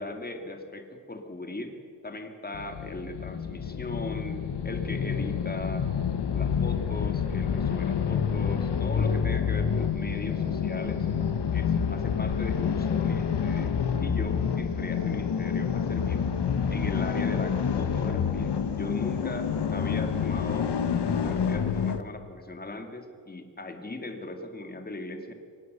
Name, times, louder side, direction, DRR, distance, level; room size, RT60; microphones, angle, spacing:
voice 1, 0.0-1.7 2.0-5.9 6.3-11.1 11.5-13.7 14.0-16.3 16.7-20.7 21.1-25.3, left 2 dB, 20° left, 5 dB, 2.5 m, -38 dB
sound 1, 2.5-22.0, left 7 dB, 60° left, 1.4 m, -28 dB
23.5 x 19.0 x 6.9 m, 2.1 s
cardioid pair, 95°, 46 cm